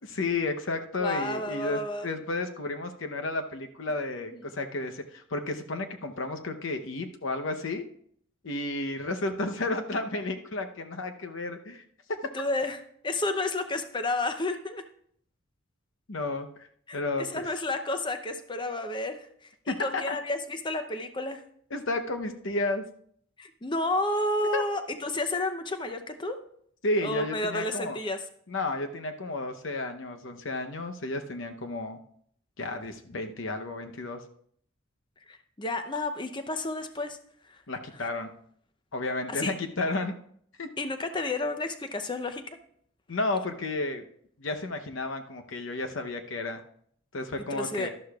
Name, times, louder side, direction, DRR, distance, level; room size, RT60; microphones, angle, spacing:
voice 1, 0.0-7.9 8.4-11.8 16.1-16.5 16.9-17.4 19.7-20.2 21.7-22.8 24.5-24.6 26.8-28.0 28.5-32.0 32.6-34.2 37.7-38.3 38.9-40.2 40.6-40.7 43.1-44.0 44.4-46.6 47.1-47.9, left 2 dB, 65° left, 6 dB, 0.8 m, -32 dB
voice 2, 1.0-2.1 4.3-4.4 12.3-14.8 16.9-21.4 23.4-26.4 27.0-28.2 35.3-37.2 37.4-37.6 39.3-39.5 40.8-42.4 47.5-47.9, left 2 dB, 20° left, 8 dB, 0.6 m, -31 dB
12.0 x 11.5 x 2.4 m, 0.65 s
head